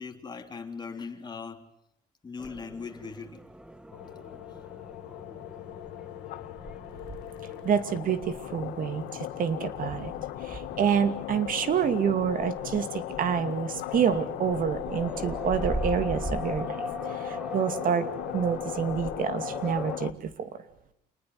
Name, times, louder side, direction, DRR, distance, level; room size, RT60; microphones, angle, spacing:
voice 1, 0.0-1.7 2.2-3.4, left 5 dB, 25° left, 3.3 m, -39 dB
sound 1, 2.4-20.0, right 1 dB, 5° right, 1.4 m, -41 dB
sound 2, 3.9-20.1, left 16 dB, 90° left, 1.2 m, -37 dB
voice 2, 7.6-10.1 10.4-16.8 17.1-18.1 18.3-20.6, right 7 dB, 55° right, 2.5 m, -28 dB
29.0 x 20.0 x 9.6 m
cardioid pair, 110°, 17 cm